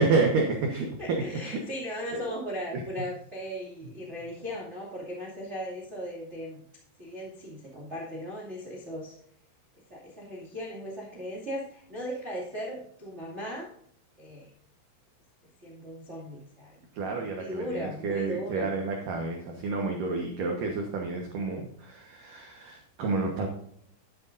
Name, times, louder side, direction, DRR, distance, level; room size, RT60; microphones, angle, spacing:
voice 1, 0.0-1.5 2.1-2.3 2.7-2.8 16.9-23.5, right 3 dB, 70° right, 2 dB, 2.0 m, -29 dB
voice 2, 1.0-6.6 7.0-9.2 9.9-13.7 14.2-14.5 15.6-16.8 17.0-18.7, equal, 35° right, -3 dB, 1.0 m, -37 dB
11.5 x 10.0 x 2.6 m, 0.67 s
omnidirectional pair, 5.6 m